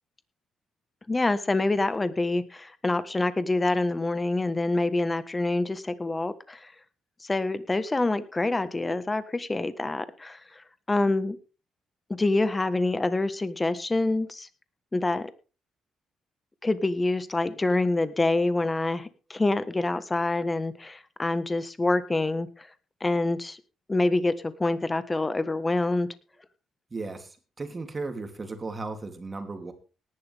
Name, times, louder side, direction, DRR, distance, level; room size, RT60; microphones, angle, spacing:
voice 1, 1.1-6.7 7.2-11.4 12.1-14.5 14.9-15.3 16.6-22.7 23.0-23.6 23.9-26.1, left 2 dB, 20° left, 13 dB, 1.5 m, -26 dB
voice 2, 26.9-29.7, right 3 dB, 30° right, 6 dB, 3.2 m, -36 dB
18.5 x 11.5 x 3.6 m, 0.33 s
cardioid pair, 90°, 0 cm